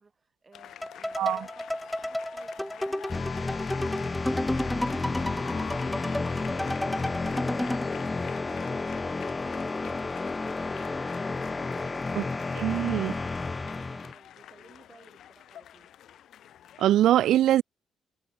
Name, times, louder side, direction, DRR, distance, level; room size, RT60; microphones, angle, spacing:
voice 1, 0.0-9.1 11.3-15.9, right 4 dB, 25° right, 5.1 m, -57 dB
sound 1, 0.5-16.9, left 11 dB, 65° left, 2.8 m, -47 dB
sound 2, 0.8-7.9, left 1 dB, 5° left, 0.3 m, -32 dB
sound 3, 3.1-14.1, left 3 dB, 20° left, 1.2 m, -31 dB
voice 2, 12.6-13.1 16.8-17.6, right 12 dB, 75° right, 0.4 m, -22 dB
cardioid pair, 130°, 0 cm